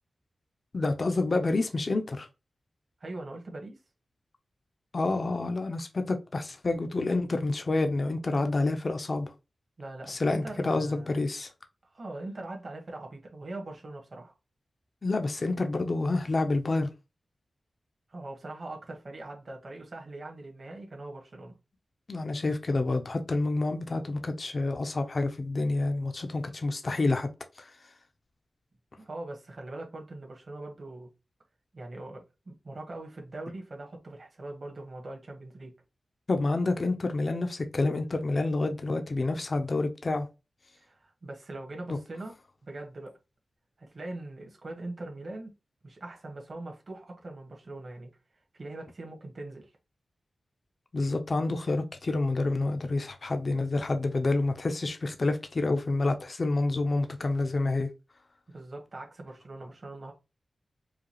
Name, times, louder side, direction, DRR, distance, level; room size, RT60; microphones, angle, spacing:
voice 1, 0.7-2.3 4.9-9.3 10.1-11.5 15.0-16.9 22.1-27.3 27.6-27.7 36.3-40.3 41.9-42.0 50.9-57.9, left 2 dB, 45° left, 0.6 m, -28 dB
voice 2, 3.0-3.8 9.8-11.3 11.9-14.3 18.1-21.5 29.0-31.1 31.7-35.7 40.8-42.4 42.6-43.2 43.8-45.5 45.8-48.1 48.5-49.7 58.5-60.1, right 2 dB, 50° right, 1.3 m, -42 dB
4.9 x 2.3 x 3.0 m
wide cardioid pair, 125°, 0 cm